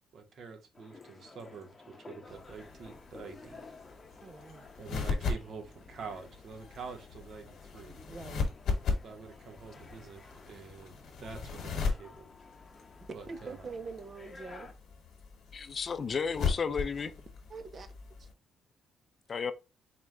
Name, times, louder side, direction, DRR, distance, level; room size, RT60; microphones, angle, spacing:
voice 1, 0.1-3.6 4.8-8.0 9.0-12.2 13.1-13.7, right 5 dB, 60° right, 0.9 m, -47 dB
sound 1, 0.7-14.7, left 3 dB, 25° left, 0.8 m, -54 dB
sound 2, 2.3-18.3, left 4 dB, 70° left, 1.2 m, -38 dB
voice 2, 4.2-4.6 8.1-8.4 13.3-14.7 17.5-17.9 18.2-18.3, right 4 dB, 40° right, 0.5 m, -44 dB
voice 3, 15.5-17.1 19.3-19.5, left 5 dB, 45° left, 0.4 m, -33 dB
4.5 x 2.2 x 3.6 m
cardioid pair, 90°, 0 cm